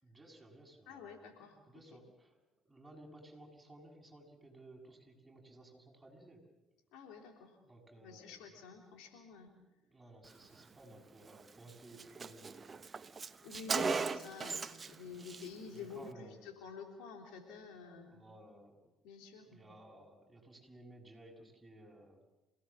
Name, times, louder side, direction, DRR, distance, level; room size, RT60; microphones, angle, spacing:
voice 1, 0.0-2.3 2.7-6.4 7.6-8.4 9.8-12.7 13.0-13.1 15.7-16.5 18.1-18.8 19.5-22.2, right 1 dB, 15° right, 0 dB, 7.5 m, -57 dB
voice 2, 0.9-1.6 1.9-2.0 6.9-7.6 8.0-9.5 13.4-18.2 19.0-19.6, left 5 dB, 70° left, 3 dB, 3.5 m, -49 dB
Car, 11.3-11.4 11.7-11.8 12.0-14.9 15.2-15.5, right 4 dB, 35° right, 1.1 m, -37 dB
27.5 x 18.0 x 7.5 m, 1.0 s
hypercardioid pair, 55°, 0 cm